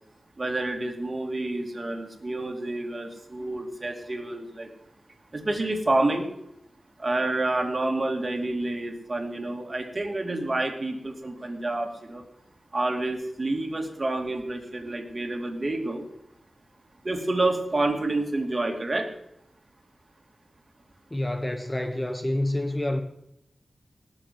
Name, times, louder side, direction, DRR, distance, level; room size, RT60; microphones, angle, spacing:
voice 1, 0.4-4.7 5.3-6.3 7.0-12.2 12.7-16.1 17.0-19.1, right 2 dB, 30° right, 4 dB, 2.6 m, -28 dB
voice 2, 21.1-23.0, left 1 dB, 15° left, 7 dB, 1.1 m, -28 dB
19.0 x 7.1 x 7.7 m, 0.79 s
wide cardioid pair, 110°, 0 cm